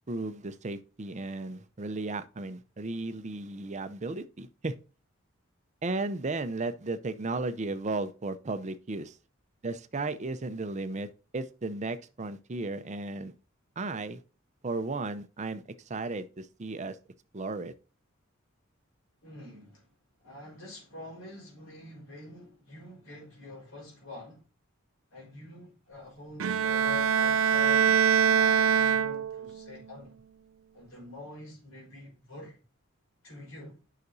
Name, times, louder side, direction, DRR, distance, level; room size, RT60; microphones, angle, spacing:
voice 1, 0.1-4.7 5.8-9.2 9.6-13.3 13.8-14.2 14.6-17.0 17.3-17.7, right 3 dB, 35° right, 0.6 m, -35 dB
voice 2, 19.2-19.9 20.2-24.4 25.1-27.9 28.2-30.2 30.7-32.6 33.2-33.8, left 2 dB, 75° left, 4.2 m, -46 dB
Bowed string instrument, 26.4-29.6, right 7 dB, 90° right, 0.5 m, -24 dB
9.5 x 5.8 x 2.6 m
head